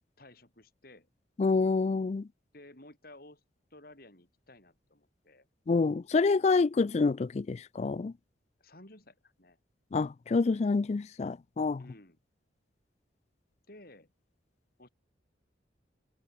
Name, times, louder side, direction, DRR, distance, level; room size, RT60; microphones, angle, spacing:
voice 1, 0.2-1.1 2.5-3.4 3.7-5.5 8.6-9.6 11.8-12.2 13.7-14.1 14.8-14.9, left 1 dB, 55° left, 5.7 m, -54 dB
voice 2, 1.4-2.3 5.7-8.1 9.9-11.8, left 4 dB, 35° left, 0.3 m, -27 dB
head